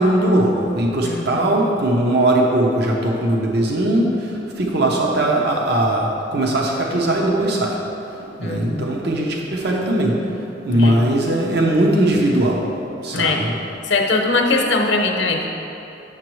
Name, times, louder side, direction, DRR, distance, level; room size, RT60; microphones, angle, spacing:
voice 1, 0.0-7.8 8.2-10.2 10.7-12.7 13.0-13.5, right 1 dB, 60° right, -1 dB, 0.8 m, -19 dB
voice 2, 1.0-1.6 8.4-8.9 10.7-11.0 13.1-13.4 13.9-15.5, left 3 dB, 70° left, 2 dB, 0.8 m, -21 dB
9.0 x 6.9 x 3.1 m, 2.9 s
head